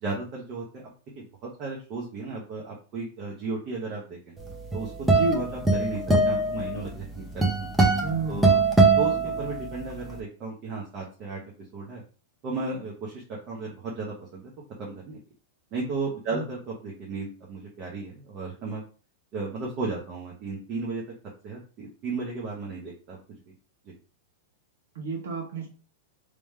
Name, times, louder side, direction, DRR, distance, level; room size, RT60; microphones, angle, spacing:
voice 1, 0.0-4.2 4.7-4.9 5.3-5.5 5.7-7.7 8.3-8.6 9.0-11.4 11.7-12.0 12.4-14.5 14.8-15.2 15.7-18.8 19.3-21.0 21.4-23.2 23.5-23.6 23.9-24.0, right 3 dB, 30° right, -4 dB, 0.9 m, -34 dB
sound 1, 4.5-9.9, right 3 dB, 5° right, 0.6 m, -22 dB
voice 2, 5.1-5.4 8.0-8.6 16.3-16.5 24.9-25.7, right 3 dB, 85° right, 2 dB, 1.5 m, -30 dB
3.2 x 3.0 x 3.6 m, 0.37 s
supercardioid pair, 170°, 0 cm